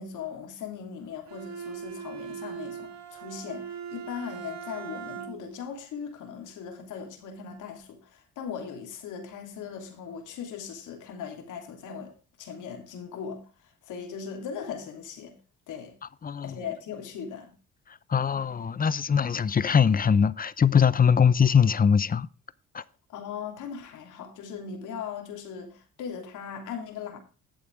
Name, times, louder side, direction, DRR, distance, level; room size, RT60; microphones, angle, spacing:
voice 1, 0.0-12.1 12.4-15.3 15.7-15.9 16.4-17.5 23.1-27.2, left 7 dB, 85° left, 3.1 m, -39 dB
Bowed string instrument, 1.3-5.6, right 7 dB, 65° right, 1.7 m, -40 dB
voice 2, 16.2-16.5 18.1-22.3 22.7-22.8, left 7 dB, 30° left, 0.7 m, -22 dB
11.5 x 8.6 x 3.5 m
cardioid pair, 90°, 30 cm